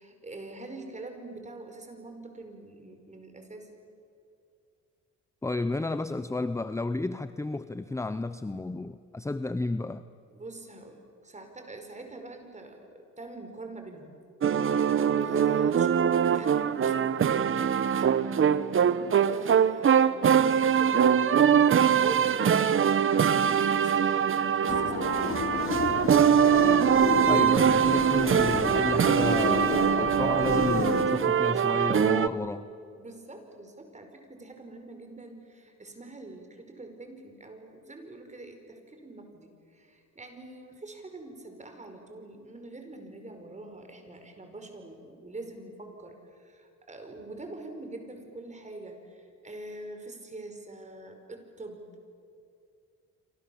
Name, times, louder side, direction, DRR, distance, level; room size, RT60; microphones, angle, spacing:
voice 1, 0.0-3.7 10.3-14.2 15.0-17.4 17.9-21.1 21.5-26.1 32.9-52.0, right 2 dB, 25° right, 5 dB, 5.1 m, -44 dB
voice 2, 5.4-10.0 27.3-32.7, left 2 dB, 10° left, 12 dB, 0.7 m, -32 dB
sound 1, 14.4-32.3, right 8 dB, 45° right, 1.0 m, -23 dB
sound 2, 24.7-31.1, left 5 dB, 45° left, 2.2 m, -31 dB
27.5 x 26.5 x 7.2 m, 2.4 s
cardioid pair, 90°, 30 cm